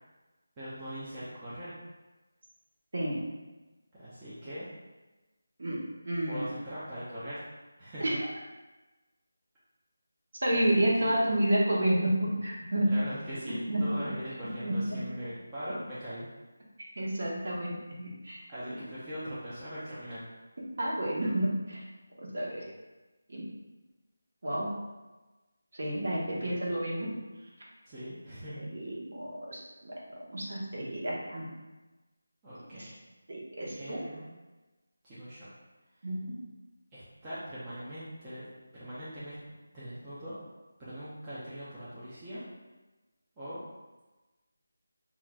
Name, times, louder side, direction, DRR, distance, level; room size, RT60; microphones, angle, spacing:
voice 1, 0.6-1.7 3.9-4.7 6.3-7.4 7.8-8.0 10.5-11.2 12.9-16.3 18.5-20.2 26.3-26.6 27.8-28.6 32.4-32.9 33.8-34.3 35.0-35.5 36.9-38.4 38.7-39.4 39.7-40.4 40.8-42.4 43.4-43.6, equal, 15° right, -12 dB, 0.5 m, -41 dB
voice 2, 5.6-6.5 8.0-8.2 10.4-12.9 13.5-14.1 14.4-15.0 17.0-18.4 20.8-21.9 22.2-22.7 23.3-23.5 24.4-24.7 25.7-27.1 28.6-29.9 30.3-31.5 32.7-32.9 33.3-34.0 36.0-36.4, right 1 dB, 50° right, -4 dB, 1.0 m, -30 dB
5.5 x 2.4 x 2.2 m, 1.2 s
figure-of-eight pair, 175°, 0 cm